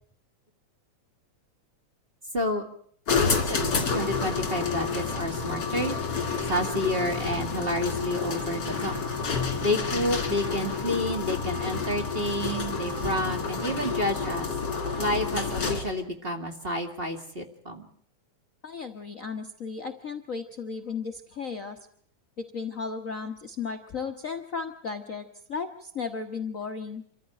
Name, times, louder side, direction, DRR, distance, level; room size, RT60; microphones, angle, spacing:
sound 1, 3.1-16.0, left 5 dB, 35° left, 2.8 m, -29 dB
voice 1, 3.1-6.0 6.5-8.9 9.6-14.5 15.0-17.9, left 1 dB, 20° right, 5 dB, 1.8 m, -30 dB
voice 2, 18.6-21.8 22.4-27.0, left 5 dB, 70° left, 5 dB, 0.7 m, -35 dB
26.5 x 14.5 x 8.9 m, 0.62 s
omnidirectional pair, 3.4 m